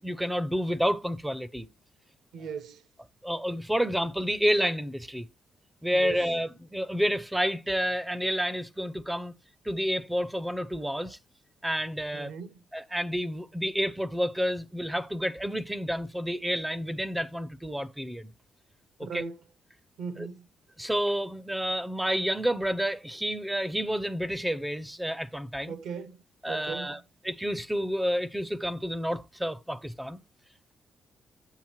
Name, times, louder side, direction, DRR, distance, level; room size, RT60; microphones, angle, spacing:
voice 1, 0.0-1.7 3.2-5.3 5.8-9.3 9.6-11.2 11.6-12.3 12.7-18.3 19.1-19.2 20.2-20.3 20.8-25.8 26.4-27.0 27.2-30.2, equal, 5° right, 0.4 m, -29 dB
voice 2, 2.3-2.8 5.9-6.3 12.1-12.6 19.0-19.4 20.0-20.5 25.7-27.0, right 6 dB, 75° right, 0.8 m, -38 dB
7.9 x 7.2 x 3.0 m
cardioid pair, 165°, 0 cm